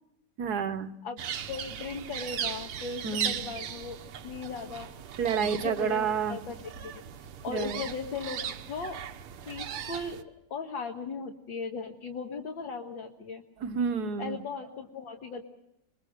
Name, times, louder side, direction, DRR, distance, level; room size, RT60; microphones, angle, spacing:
voice 1, 0.4-0.9 3.0-3.4 5.2-6.4 7.5-7.8 13.6-14.4, right 6 dB, 55° right, 10 dB, 1.4 m, -29 dB
sound 1, 1.2-10.2, right 9 dB, 80° right, 2.0 m, -38 dB
voice 2, 1.5-4.0 4.2-4.9 5.4-6.6 6.8-7.0 7.4-9.0 9.5-10.2 10.5-13.4 14.2-15.4, left 4 dB, 60° left, 2 dB, 2.1 m, -37 dB
27.0 x 21.5 x 6.5 m, 0.84 s
omnidirectional pair, 2.4 m